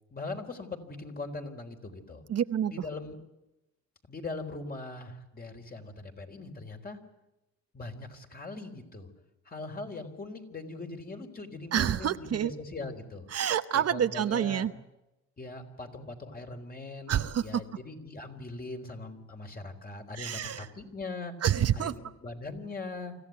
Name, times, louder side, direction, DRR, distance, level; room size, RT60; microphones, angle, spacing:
voice 1, 0.1-2.2 2.7-3.2 4.1-7.0 7.7-9.1 9.5-13.3 13.7-14.7 15.4-21.3 21.8-23.2, left 3 dB, 30° left, 4 dB, 3.9 m, -41 dB
voice 2, 2.3-2.7 11.7-12.5 13.3-14.7 17.1-17.6 20.1-20.7 21.4-21.9, right 9 dB, 55° right, 11 dB, 0.9 m, -28 dB
26.0 x 15.0 x 9.4 m, 0.97 s
cardioid pair, 90°, 30 cm